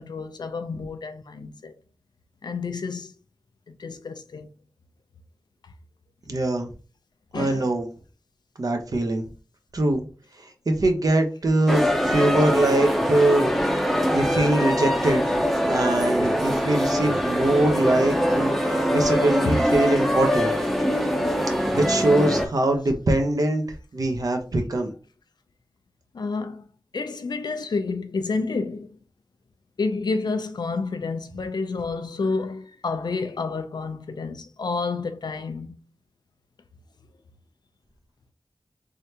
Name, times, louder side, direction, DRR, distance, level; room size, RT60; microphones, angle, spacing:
voice 1, 0.0-1.7 2.4-3.1 3.7-4.5 7.3-7.7 19.4-19.6 26.1-26.7 26.9-29.0 29.8-35.8, left 4 dB, 80° left, 0.5 m, -29 dB
voice 2, 6.3-6.7 7.3-7.9 8.6-9.3 9.7-10.1 10.7-13.6 14.1-15.2 15.7-20.5 21.7-23.6 23.9-24.9, right 1 dB, 60° right, 0.9 m, -22 dB
sound 1, 11.7-22.5, equal, ahead, 0.7 m, -23 dB
3.8 x 3.2 x 2.8 m
wide cardioid pair, 80°, 7 cm